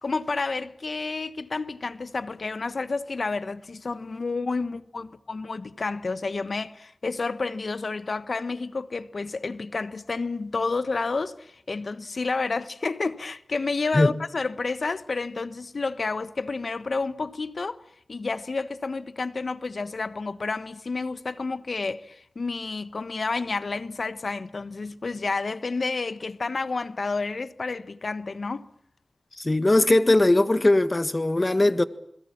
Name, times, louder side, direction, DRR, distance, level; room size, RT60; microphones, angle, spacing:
voice 1, 0.0-17.8 18.1-28.6, left 3 dB, 70° left, 1.2 m, -30 dB
voice 2, 29.4-31.8, left 2 dB, 35° left, 1.6 m, -20 dB
28.0 x 21.5 x 7.3 m
cardioid pair, 50°, 0 cm